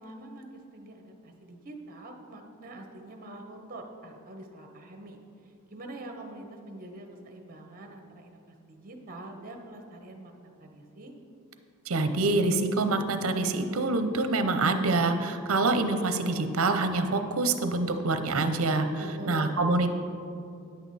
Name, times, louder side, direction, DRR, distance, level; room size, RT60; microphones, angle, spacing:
voice 1, 0.0-5.2 5.7-11.1 19.0-19.6, right 1 dB, 40° right, 4 dB, 1.0 m, -44 dB
voice 2, 11.9-19.9, right 2 dB, 70° right, 8 dB, 0.7 m, -26 dB
9.6 x 8.1 x 4.1 m, 2.5 s
head